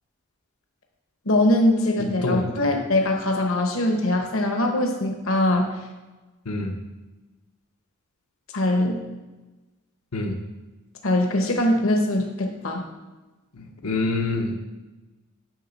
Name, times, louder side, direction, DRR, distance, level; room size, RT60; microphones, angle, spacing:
voice 1, 1.3-5.7 8.5-9.0 11.0-12.8, left 1 dB, 65° left, 3 dB, 1.0 m, -22 dB
voice 2, 6.4-6.7 10.1-10.4 13.5-14.6, left 2 dB, 90° left, 1 dB, 1.0 m, -26 dB
9.2 x 6.2 x 4.1 m, 1.2 s
head